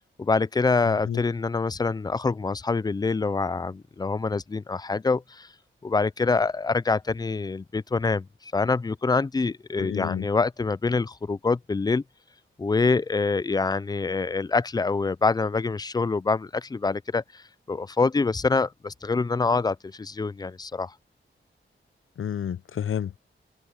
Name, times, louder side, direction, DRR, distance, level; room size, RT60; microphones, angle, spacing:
voice 1, 0.2-5.5 5.8-12.0 12.6-20.9, left 4 dB, 20° left, 0.3 m, -25 dB
voice 2, 9.8-10.3 22.2-23.2, left 9 dB, 80° left, 0.7 m, -30 dB
wide cardioid pair, 160°, 21 cm